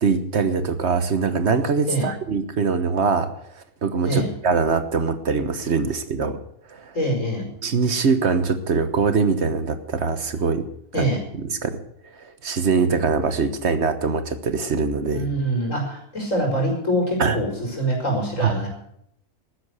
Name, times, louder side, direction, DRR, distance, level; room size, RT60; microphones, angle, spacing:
voice 1, 0.0-3.3 3.8-6.4 6.7-6.9 7.6-10.6 10.9-11.8 12.2-15.3 17.2-17.4 18.4-18.5, right 5 dB, 60° right, 10 dB, 1.4 m, -23 dB
voice 2, 6.9-7.5 10.9-11.2 15.1-18.7, right 1 dB, 75° left, 1 dB, 5.2 m, -24 dB
13.0 x 10.5 x 8.1 m, 0.72 s
omnidirectional pair, 1.3 m